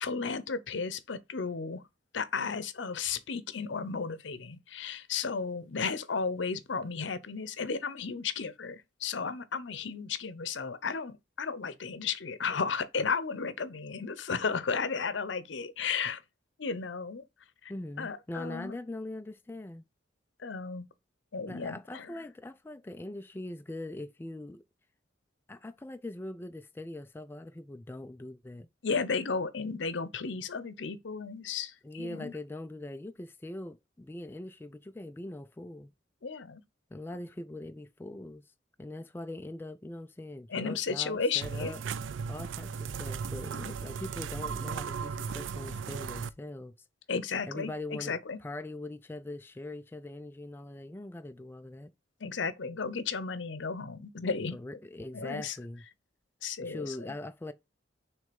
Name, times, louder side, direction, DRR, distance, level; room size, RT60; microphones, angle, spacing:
voice 1, 0.0-1.8 2.1-16.2 16.6-17.2 17.6-17.7 18.0-18.7 20.4-20.9 21.3-22.1 28.8-32.3 36.2-36.6 40.5-41.7 43.5-43.7 47.1-48.4 52.2-54.6 55.1-55.6 56.4-57.1, left 5 dB, 75° left, 0.7 m, -34 dB
voice 2, 17.7-19.8 21.5-24.6 25.5-28.7 31.8-35.9 36.9-38.4 38.8-41.8 42.3-46.7 47.5-51.9 54.5-55.8 56.6-57.5, left 1 dB, 10° left, 0.3 m, -42 dB
sound 1, 41.4-46.3, right 6 dB, 85° right, 0.4 m, -36 dB
6.2 x 3.2 x 5.1 m
head